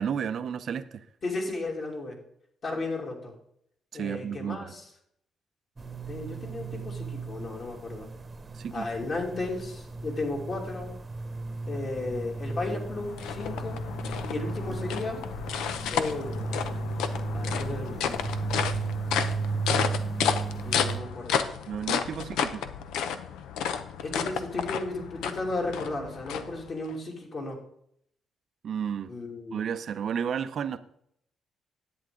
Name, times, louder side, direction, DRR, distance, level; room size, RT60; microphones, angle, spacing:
voice 1, 0.0-1.0 3.9-4.7 8.5-8.9 21.7-22.7 28.6-29.1 29.5-30.8, right 8 dB, 60° right, 11 dB, 0.7 m, -32 dB
voice 2, 1.2-2.2 2.6-3.3 3.9-4.8 6.1-8.1 8.7-10.9 11.7-13.8 14.2-15.2 15.9-16.6 17.3-18.3 20.6-21.5 24.0-27.6 29.1-29.6, left 2 dB, 45° left, 0 dB, 2.8 m, -34 dB
sound 1, 5.8-21.0, right 3 dB, 25° right, 1.0 m, -35 dB
sound 2, 12.5-27.0, left 8 dB, 90° left, 0.7 m, -32 dB
10.5 x 8.5 x 3.8 m, 0.70 s
cardioid pair, 90°, 0 cm